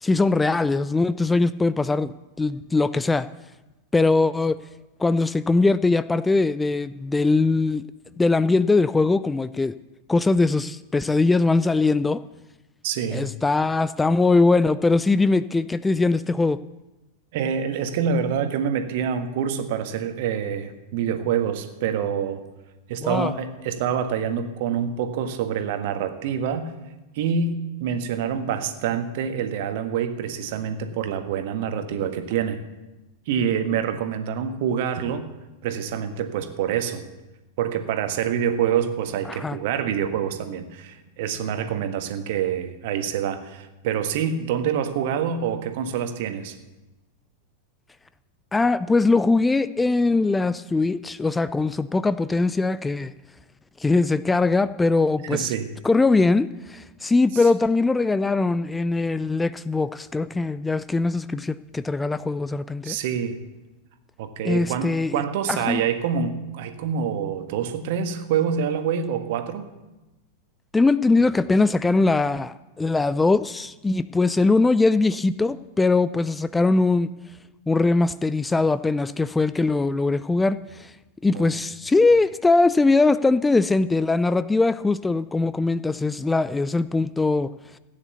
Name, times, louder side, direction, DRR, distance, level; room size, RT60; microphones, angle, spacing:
voice 1, 0.0-3.3 3.9-4.6 5.0-7.8 8.2-9.8 10.1-12.2 13.1-16.6 23.0-23.3 39.3-39.6 48.5-53.1 53.8-55.5 55.8-63.0 64.4-65.2 65.5-65.8 70.7-77.1 77.7-80.9 81.2-87.5, left 3 dB, 10° left, 15 dB, 0.4 m, -21 dB
voice 2, 12.8-13.3 17.3-22.4 22.9-26.7 27.1-32.6 33.3-35.2 35.6-37.0 37.6-46.6 55.2-55.7 62.8-63.4 64.2-69.7 81.3-81.6, right 8 dB, 50° right, 8 dB, 1.5 m, -26 dB
15.5 x 9.7 x 7.0 m, 1.1 s
figure-of-eight pair, 90°, 0 cm